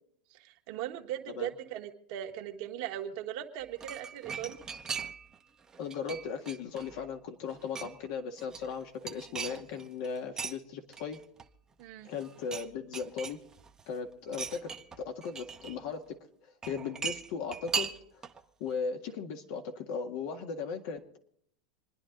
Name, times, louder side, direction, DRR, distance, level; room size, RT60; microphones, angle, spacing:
voice 1, 0.4-4.6 11.8-12.1, right 11 dB, 60° right, 3 dB, 1.7 m, -39 dB
sound 1, 3.6-5.4 5.7-7.1 7.4-8.1 8.4-10.5 10.9-11.8 12.1-12.7 12.9-13.8 14.3-15.8 16.6-18.4 18.7-18.8, right 6 dB, 20° right, 1.0 m, -39 dB
voice 2, 5.8-11.2 12.0-13.4 13.9-14.7 15.0-16.0 16.7-17.9 18.6-21.2, left 5 dB, 60° left, 4 dB, 1.9 m, -37 dB
27.0 x 10.0 x 4.0 m, 0.71 s
supercardioid pair, 115°, 3 cm